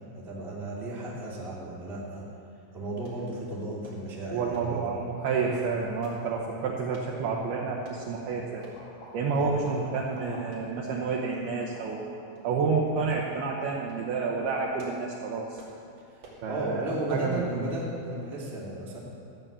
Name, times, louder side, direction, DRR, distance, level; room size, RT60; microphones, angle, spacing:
voice 1, 0.1-2.2 2.7-4.9 9.3-9.5 16.1-19.0, right 1 dB, 5° right, -6 dB, 0.3 m, -34 dB
sound 1, 3.0-3.2 3.8-4.0 4.5-4.8 5.2-5.4 6.0-6.2 6.9-7.2 7.8-8.0 8.6-8.8 9.2-9.3 9.7-9.8 10.5-10.7 11.6-12.0 12.3-12.5 13.1-13.3 13.7-14.1 14.6-15.1 15.5-15.8 16.2-16.5 17.1-17.3 17.8-18.0 18.3-18.4, right 2 dB, 55° right, 3.9 m, -51 dB
voice 2, 4.3-8.6 9.1-12.1 12.4-15.6 16.4-16.8 17.1-17.7, right 4 dB, 80° right, -3 dB, 2.2 m, -29 dB
sound 2, 8.5-12.4, left 2 dB, 75° left, 5.0 m, -48 dB
14.0 x 8.9 x 6.8 m, 2.6 s
omnidirectional pair, 5.8 m